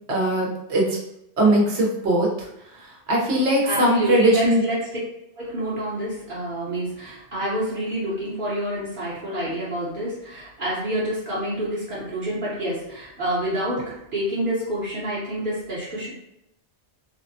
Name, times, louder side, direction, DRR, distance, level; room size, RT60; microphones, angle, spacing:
voice 1, 0.1-1.0 1.4-2.5 2.7-4.6, right 1 dB, 75° right, -1 dB, 1.1 m, -20 dB
voice 2, 3.6-4.9 5.4-16.1, equal, 50° right, -8 dB, 1.1 m, -28 dB
3.5 x 2.1 x 2.7 m, 0.83 s
omnidirectional pair, 1.1 m